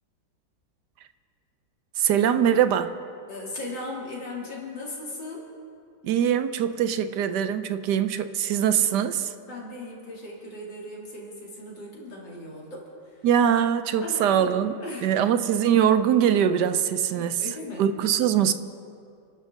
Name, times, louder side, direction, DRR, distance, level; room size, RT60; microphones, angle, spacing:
voice 1, 2.0-3.0 6.0-9.3 13.2-14.7 15.0-17.4 17.8-18.5, right 9 dB, 75° right, 11 dB, 1.2 m, -22 dB
voice 2, 3.3-5.4 9.4-13.2 14.0-15.3 17.1-17.9, left 2 dB, 85° left, -3 dB, 3.8 m, -38 dB
28.5 x 12.5 x 3.9 m, 2.4 s
omnidirectional pair, 1.9 m